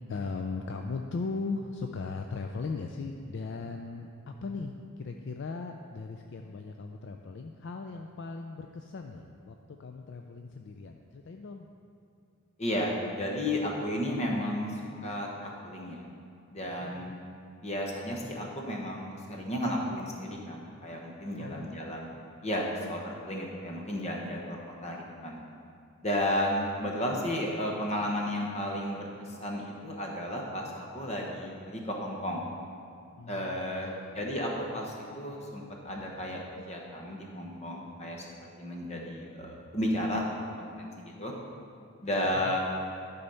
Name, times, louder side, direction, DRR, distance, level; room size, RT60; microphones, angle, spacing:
voice 1, 0.1-11.7 16.7-17.2 21.4-21.9 33.2-34.2 42.0-42.6, left 4 dB, 55° left, 4 dB, 0.4 m, -38 dB
voice 2, 12.6-16.1 16.5-17.2 17.6-22.1 22.4-25.4 26.0-32.5 33.3-38.2 38.6-41.3 42.0-42.6, left 1 dB, 30° left, -1 dB, 1.1 m, -33 dB
12.0 x 4.1 x 5.6 m, 2.5 s
head